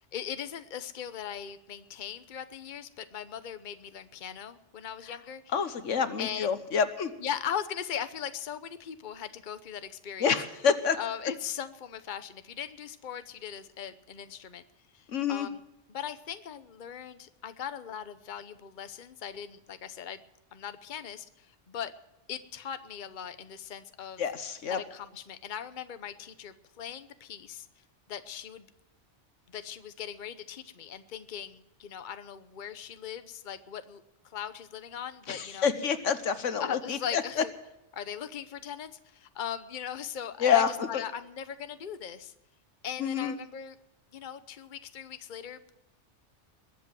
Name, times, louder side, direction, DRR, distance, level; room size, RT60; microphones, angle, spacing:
voice 1, 0.1-5.5 6.2-6.5 7.2-10.3 11.0-14.6 14.9-15.6 15.9-20.2 20.5-21.9 22.3-24.2 24.7-27.7 28.1-28.7 29.5-35.7 36.6-37.5 37.9-42.3 42.8-43.8 44.1-45.7, left 8 dB, 45° left, 11 dB, 1.0 m, -39 dB
voice 2, 5.5-7.1 10.2-11.0 15.1-15.5 24.2-24.8 35.3-37.2 40.4-41.0 43.0-43.3, left 7 dB, 85° left, 11 dB, 1.5 m, -27 dB
21.5 x 8.3 x 7.6 m, 0.90 s
omnidirectional pair, 1.2 m